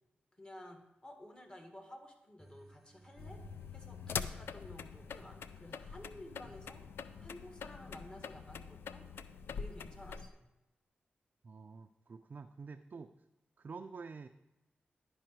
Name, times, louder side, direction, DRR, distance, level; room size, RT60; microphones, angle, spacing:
voice 1, 0.4-3.4 3.7-6.8 7.2-9.1 9.5-10.5, left 1 dB, 25° left, 4 dB, 1.5 m, -53 dB
sound 1, 2.4-10.5, right 1 dB, 10° right, 0.6 m, -61 dB
sound 2, 3.2-10.3, left 6 dB, 85° left, 0.3 m, -44 dB
voice 2, 11.4-13.1 13.6-14.3, right 4 dB, 55° right, 6 dB, 0.4 m, -48 dB
10.5 x 4.8 x 4.6 m, 0.98 s
cardioid pair, 55°, 4 cm